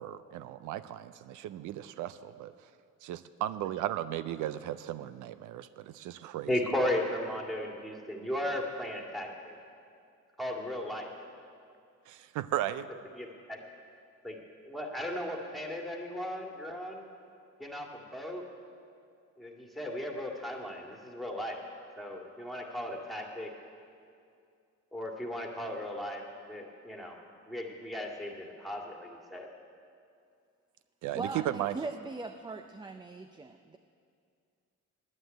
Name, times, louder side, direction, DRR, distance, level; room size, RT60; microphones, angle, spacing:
voice 1, 0.0-2.5 3.0-6.5 12.1-12.9 31.0-31.8, right 12 dB, 80° right, 14 dB, 0.5 m, -36 dB
voice 2, 6.5-9.6 10.4-11.1 13.1-13.6 14.2-14.4 14.6-17.0 17.6-18.4 19.4-21.6 22.0-23.5 24.9-26.2 26.5-27.2 27.5-29.5, left 1 dB, ahead, 0 dB, 2.0 m, -36 dB
voice 3, 31.1-33.8, right 3 dB, 15° right, 8 dB, 0.4 m, -40 dB
9.8 x 9.6 x 9.0 m, 2.4 s
cardioid pair, 90°, 30 cm